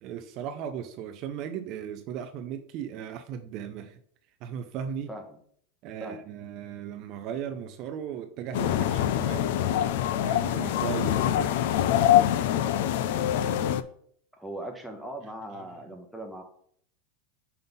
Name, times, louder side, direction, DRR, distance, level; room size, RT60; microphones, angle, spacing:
voice 1, 0.0-4.0 4.4-5.1 5.8-9.5 10.2-11.7, right 8 dB, 40° right, 8 dB, 0.5 m, -37 dB
voice 2, 5.1-5.4 6.0-6.2 14.3-16.4, right 1 dB, ahead, 4 dB, 0.9 m, -39 dB
sound 1, 8.5-13.8, left 11 dB, 65° left, 0.4 m, -24 dB
5.6 x 5.4 x 3.9 m, 0.62 s
supercardioid pair, 160°, 0 cm